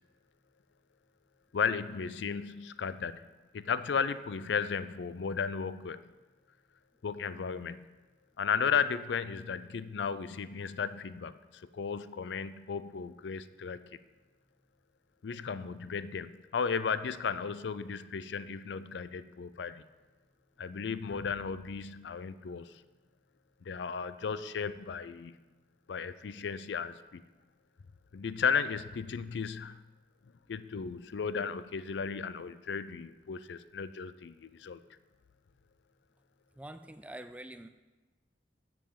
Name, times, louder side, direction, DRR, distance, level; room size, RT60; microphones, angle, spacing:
voice 1, 1.5-3.3 3.5-6.0 7.0-7.9 8.4-14.0 15.2-19.8 20.6-22.8 23.6-25.4 25.9-27.2 28.1-29.8 30.5-34.8, left 6 dB, 80° left, 14 dB, 0.4 m, -35 dB
voice 2, 36.6-37.7, right 1 dB, 10° right, 10 dB, 0.3 m, -45 dB
7.3 x 7.0 x 7.2 m, 1.2 s
head